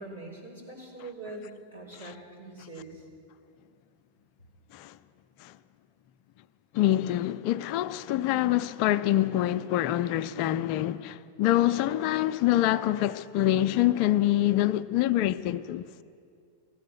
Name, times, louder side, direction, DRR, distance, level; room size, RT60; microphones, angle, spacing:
voice 1, 0.0-3.1, right 2 dB, 85° right, 4.5 m, -43 dB
voice 2, 6.7-15.9, left 13 dB, 45° left, 0.4 m, -25 dB
16.5 x 13.0 x 5.9 m
figure-of-eight pair, 90°, 0 cm